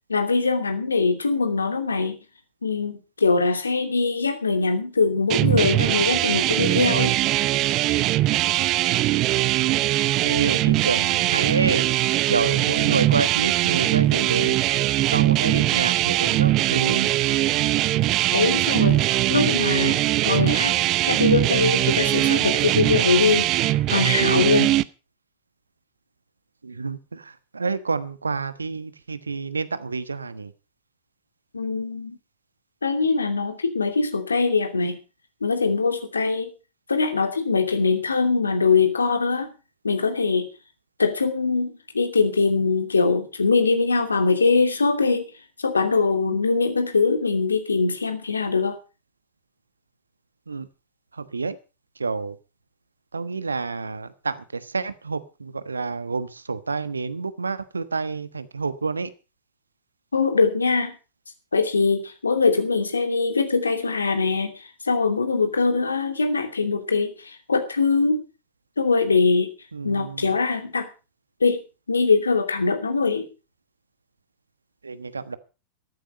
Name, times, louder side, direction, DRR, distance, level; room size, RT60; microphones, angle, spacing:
voice 1, 0.1-2.2 2.6-7.1 18.3-20.0 20.2-23.5 23.9-24.7 31.5-32.2 32.8-35.0 35.4-36.5 36.9-39.5 39.8-40.5 41.0-45.3 45.6-48.8 60.1-60.9 61.5-68.2 68.8-69.5 69.8-70.9 71.4-71.6 71.9-73.3, left 4 dB, 75° left, 7 dB, 2.7 m, -22 dB
sound 1, 5.3-24.8, right 16 dB, 40° right, 0.7 m, -21 dB
voice 2, 10.2-11.9 12.3-14.6 15.1-17.1 26.6-30.5 50.5-50.7 51.1-51.6 52.0-52.4 53.1-59.1 69.7-70.3 74.8-75.4, right 4 dB, 75° right, 14 dB, 1.2 m, -28 dB
14.0 x 13.5 x 5.1 m, 0.32 s
figure-of-eight pair, 90°, 0 cm